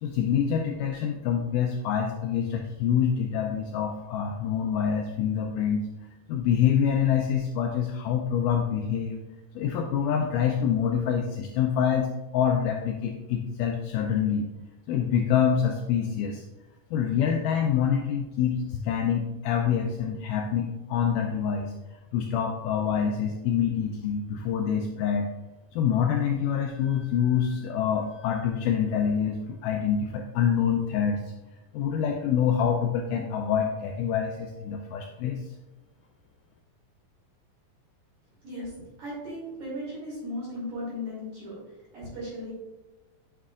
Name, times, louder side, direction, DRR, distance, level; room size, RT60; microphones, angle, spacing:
voice 1, 0.0-5.8 6.3-9.2 9.6-14.5 14.9-16.4 16.9-21.7 22.1-25.3 25.7-31.3 31.7-35.4, left 8 dB, 85° left, 2 dB, 1.8 m, -26 dB
voice 2, 39.0-42.5, left 1 dB, 55° right, -8 dB, 3.7 m, -36 dB
9.5 x 5.7 x 2.4 m, 1.1 s
omnidirectional pair, 4.2 m